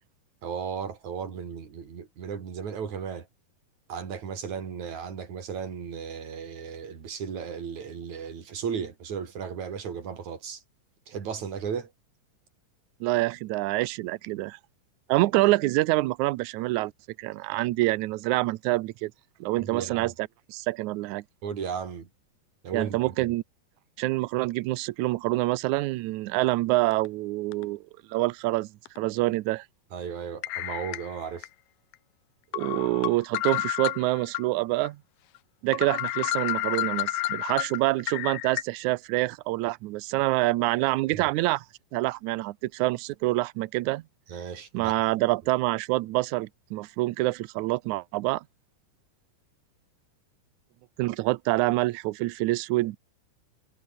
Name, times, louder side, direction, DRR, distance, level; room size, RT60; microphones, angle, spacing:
voice 1, 0.4-3.3 3.9-10.6 11.1-11.9 19.6-20.1 21.4-22.1 22.6-23.1 29.9-31.5 41.1-41.3 44.3-45.0, right 7 dB, 55° right, 4.6 m, -35 dB
voice 2, 13.0-14.6 15.1-16.9 17.2-19.1 19.4-21.2 22.7-23.4 24.0-27.8 28.1-28.7 29.0-29.7 32.5-35.0 35.6-41.6 41.9-44.0 44.7-48.4 51.0-53.0, right 19 dB, 75° right, 1.9 m, -26 dB
sound 1, 26.9-27.1 27.5-27.6 28.9-29.0 30.4-31.5 31.9-32.0 32.5-34.4 34.8-34.9 35.4-35.5 35.7-38.6, left 17 dB, 80° left, 2.4 m, -30 dB
omnidirectional pair, 4.0 m